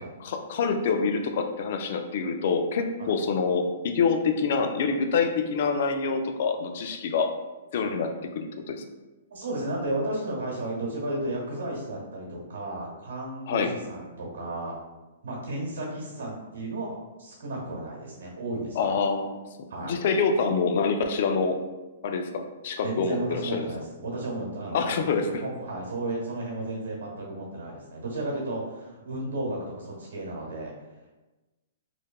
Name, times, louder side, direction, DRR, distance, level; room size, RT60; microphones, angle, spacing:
voice 1, 0.2-7.3 7.7-8.8 13.5-13.7 18.8-19.4 19.8-21.6 22.0-23.7 24.7-25.4, left 5 dB, 55° left, 6 dB, 0.3 m, -26 dB
voice 2, 9.3-14.7 15.2-18.9 19.7-19.9 22.8-25.1 25.4-30.7, right 2 dB, 80° right, -2 dB, 1.2 m, -33 dB
3.2 x 2.2 x 2.3 m, 1.1 s
hypercardioid pair, 140°, 0 cm